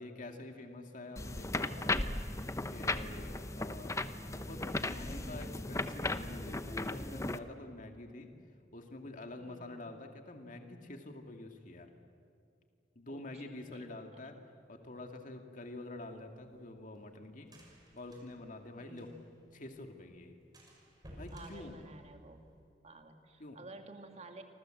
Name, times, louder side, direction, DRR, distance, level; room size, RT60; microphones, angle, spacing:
voice 1, 0.0-1.9 2.7-4.0 4.3-8.3 8.7-11.9 13.0-14.4 14.7-17.5 17.9-19.1 19.5-20.4 21.2-21.7 23.4-23.6, left 2 dB, 50° left, 4 dB, 2.4 m, -47 dB
sound 1, 1.2-7.4, left 2 dB, 15° left, 0.9 m, -36 dB
voice 2, 3.0-3.4 9.4-9.9 13.1-14.0 18.8-19.1 21.3-22.4 22.8-24.4, right 2 dB, 40° right, 5 dB, 2.5 m, -53 dB
sound 2, 16.0-19.4 19.7-19.8 20.1-20.2 20.5-22.6, equal, 25° right, 6.3 m, -54 dB
29.0 x 25.5 x 7.8 m, 2.5 s
head